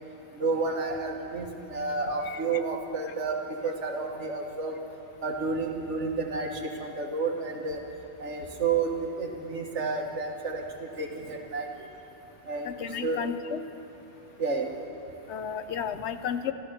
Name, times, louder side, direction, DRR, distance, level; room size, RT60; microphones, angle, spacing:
voice 1, 0.4-4.8 5.2-7.8 8.2-11.7 12.5-12.7 13.0-13.3 14.4-14.7, right 4 dB, 85° right, 2 dB, 1.7 m, -31 dB
voice 2, 12.6-13.6 15.3-16.5, left 8 dB, 80° left, 11 dB, 1.0 m, -33 dB
14.5 x 13.0 x 6.6 m, 2.8 s
omnidirectional pair, 1.2 m